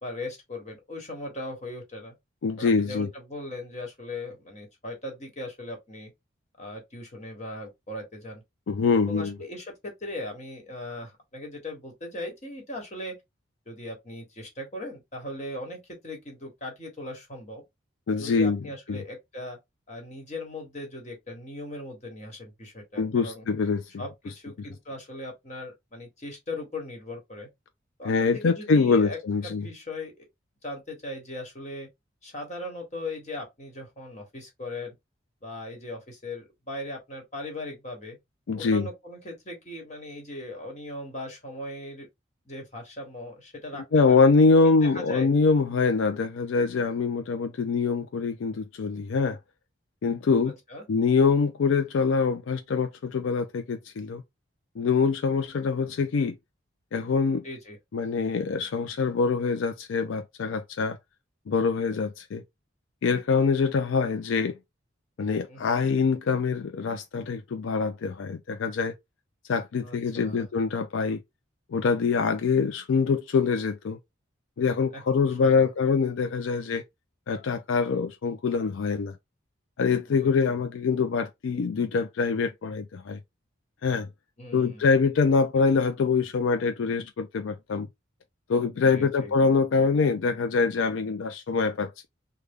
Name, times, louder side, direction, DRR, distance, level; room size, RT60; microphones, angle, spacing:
voice 1, 0.0-2.1 2.6-6.1 6.6-8.4 9.0-13.2 13.7-17.6 18.2-19.6 19.9-23.5 24.0-27.5 28.0-29.2 29.4-30.2 30.6-31.9 32.2-34.9 35.4-38.2 38.5-42.1 42.4-44.3 44.8-45.3 50.7-50.8 57.4-57.8 65.5-65.9 69.8-70.5 74.9-75.7 80.1-80.6 84.4-84.8 88.9-89.3, left 1 dB, 35° left, 1.3 m, -39 dB
voice 2, 2.4-3.1 8.7-9.4 18.1-18.6 18.9-19.0 23.0-24.0 24.6-24.7 28.0-29.7 38.5-38.9 43.9-49.4 50.0-50.5 50.9-54.2 54.8-56.4 56.9-57.4 57.9-61.0 61.5-62.4 63.0-64.6 65.2-68.9 69.5-71.2 71.7-74.0 74.6-76.8 77.3-79.2 79.8-83.2 83.8-84.1 84.5-87.9 88.5-92.1, left 4 dB, 80° left, 0.4 m, -24 dB
3.3 x 2.2 x 3.5 m
head